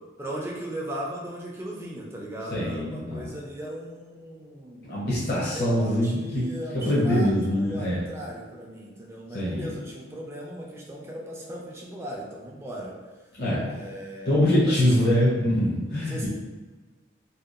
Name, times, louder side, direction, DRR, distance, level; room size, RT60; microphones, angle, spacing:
voice 1, 0.2-4.9 5.5-13.0 13.6-14.4 14.6-14.9 16.1-16.3, right 1 dB, 15° right, -3 dB, 0.4 m, -37 dB
voice 2, 2.5-3.3 4.9-6.5 6.7-8.1 9.3-9.7 13.4-13.7 14.3-16.3, left 1 dB, 55° left, -8 dB, 0.7 m, -24 dB
2.7 x 2.2 x 2.4 m, 1.3 s
head